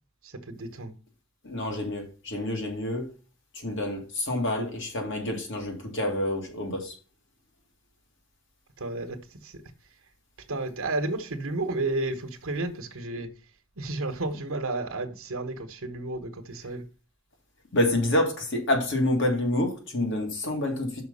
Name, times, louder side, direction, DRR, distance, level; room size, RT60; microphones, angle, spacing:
voice 1, 0.5-0.9 8.8-9.2 9.4-9.5 10.5-13.3 13.8-16.8, right 2 dB, 70° right, 1.1 m, -32 dB
voice 2, 1.4-3.1 3.5-6.9 17.7-21.0, left 1 dB, 60° left, 2.0 m, -28 dB
5.9 x 5.2 x 5.4 m
head